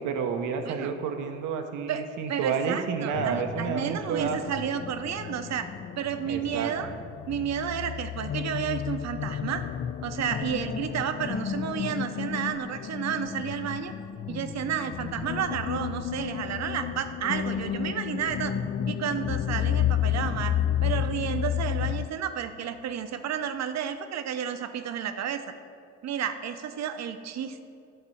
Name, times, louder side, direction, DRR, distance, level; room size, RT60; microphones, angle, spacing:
voice 1, 0.0-4.4 6.3-6.7, right 6 dB, 90° right, 5 dB, 0.8 m, -30 dB
voice 2, 1.9-5.7 5.9-6.9 7.3-9.6 10.0-13.9 14.3-18.6 18.9-20.6 20.8-25.4 26.0-27.6, right 8 dB, 60° right, 9 dB, 0.7 m, -31 dB
sound 1, 3.1-22.1, left 10 dB, 35° left, 0.4 m, -32 dB
11.0 x 4.1 x 7.0 m, 2.5 s
cardioid pair, 90°, 30 cm